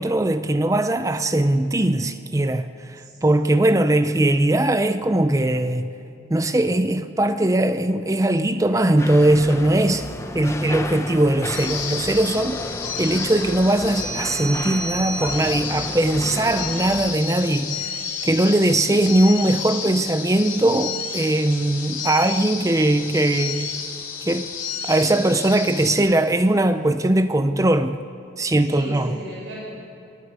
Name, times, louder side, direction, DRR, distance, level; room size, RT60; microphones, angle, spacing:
voice 1, 0.0-2.7 3.2-5.9 6.3-10.1 10.3-12.6 13.0-18.0 18.2-23.7 24.3-24.5 24.8-28.0 28.4-29.1, right 1 dB, 15° right, 0.5 m, -20 dB
voice 2, 1.3-1.6 3.0-3.6 28.7-29.5, equal, 85° right, 6.9 m, -37 dB
sound 1, 9.0-17.1, left 1 dB, 15° left, 0.9 m, -33 dB
sound 2, 11.5-26.0, left 5 dB, 75° left, 4.2 m, -31 dB
26.0 x 11.5 x 9.6 m
head